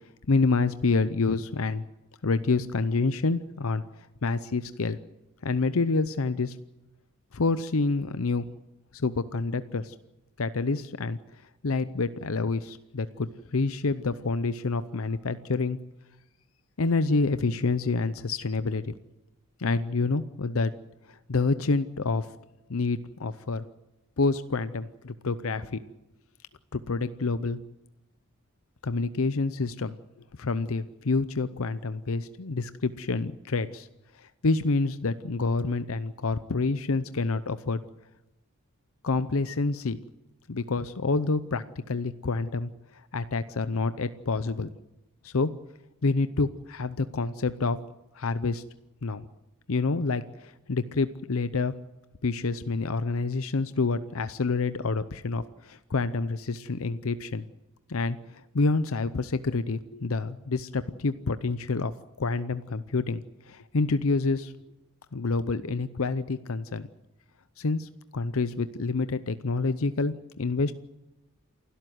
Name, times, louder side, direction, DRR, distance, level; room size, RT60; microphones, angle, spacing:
voice 1, 0.3-1.8 2.2-3.8 4.2-5.0 5.4-6.6 7.3-8.5 8.9-9.9 10.4-11.2 11.6-15.8 16.8-18.9 19.6-20.7 21.1-22.3 22.7-23.6 24.2-25.8 26.7-27.6 28.8-30.0 30.4-33.9 34.1-37.8 39.0-40.0 40.5-42.7 43.1-44.7 45.2-45.5 46.0-47.8 48.1-48.6 49.0-49.3 49.7-51.7 52.2-57.4 57.9-61.9 62.2-64.5 65.1-66.9 67.6-70.7, left 3 dB, 70° left, 13 dB, 0.7 m, -28 dB
28.0 x 12.5 x 9.4 m, 0.98 s
head